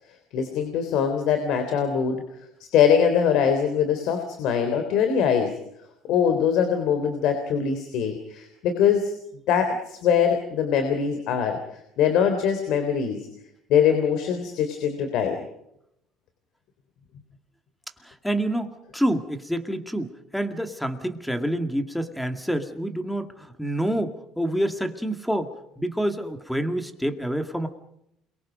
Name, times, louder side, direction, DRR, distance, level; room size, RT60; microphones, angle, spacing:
voice 1, 0.3-2.2 2.7-5.5 6.1-9.1 9.5-11.6 12.0-13.2 13.7-15.4, left 7 dB, 70° left, 6 dB, 3.5 m, -22 dB
voice 2, 18.0-27.7, right 1 dB, ahead, 7 dB, 2.2 m, -27 dB
29.0 x 23.0 x 5.2 m, 0.78 s
cardioid pair, 120°, 0 cm